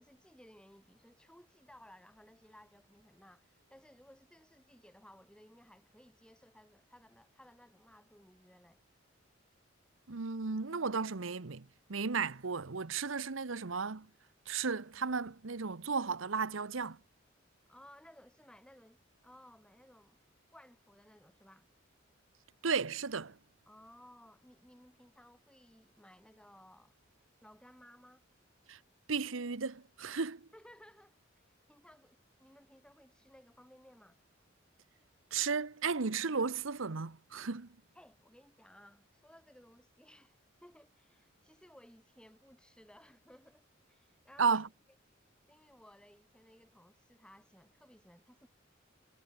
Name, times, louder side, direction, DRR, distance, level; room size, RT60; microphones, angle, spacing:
voice 1, 0.0-8.8 17.7-20.2 20.5-21.7 23.7-26.9 27.4-28.2 30.5-34.2 37.9-44.5 45.5-48.5, equal, 5° left, 6.7 m, -59 dB
voice 2, 10.1-11.6 11.9-14.1 14.5-17.0 22.6-23.3 28.7-28.8 29.1-30.4 35.3-37.7 44.4-44.7, right 5 dB, 85° right, 1.0 m, -34 dB
head